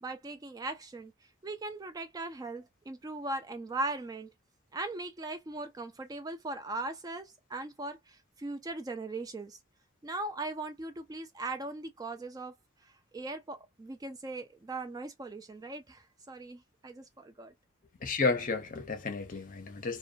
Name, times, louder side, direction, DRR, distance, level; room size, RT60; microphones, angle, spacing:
voice 1, 0.0-1.1 1.4-4.3 4.7-9.6 10.0-12.5 12.8-17.5, right 2 dB, 20° right, 0.3 m, -39 dB
voice 2, 18.0-20.0, left 4 dB, 40° left, 0.6 m, -32 dB
2.5 x 2.1 x 2.4 m
head